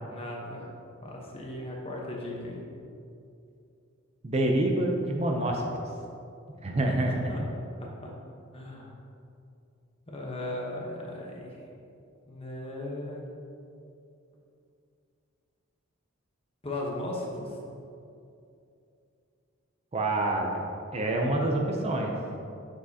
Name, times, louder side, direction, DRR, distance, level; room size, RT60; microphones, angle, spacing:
voice 1, 0.0-0.7 1.0-2.7 7.1-7.5 7.8-8.1 8.5-8.9 10.1-11.6 12.3-13.2 16.6-17.6, left 1 dB, 30° left, -2 dB, 1.0 m, -37 dB
voice 2, 4.2-5.7 6.6-7.3 19.9-22.1, right 1 dB, 30° right, 1 dB, 0.5 m, -27 dB
7.2 x 6.3 x 2.8 m, 2.6 s
head